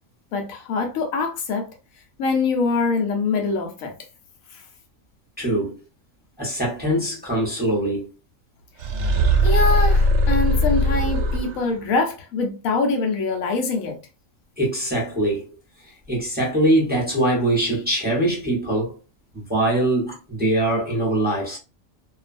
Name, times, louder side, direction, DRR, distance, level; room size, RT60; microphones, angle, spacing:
voice 1, 0.3-1.7 2.2-3.9 4.5-4.6 9.4-14.0, left 3 dB, 85° left, 1.1 m, -24 dB
voice 2, 5.4-5.8 6.4-8.1 14.6-15.5 16.1-19.0 19.3-21.6, right 1 dB, 10° right, 0.8 m, -22 dB
sound 1, 8.8-11.8, equal, 70° right, 0.8 m, -19 dB
2.6 x 2.3 x 2.5 m
omnidirectional pair, 1.4 m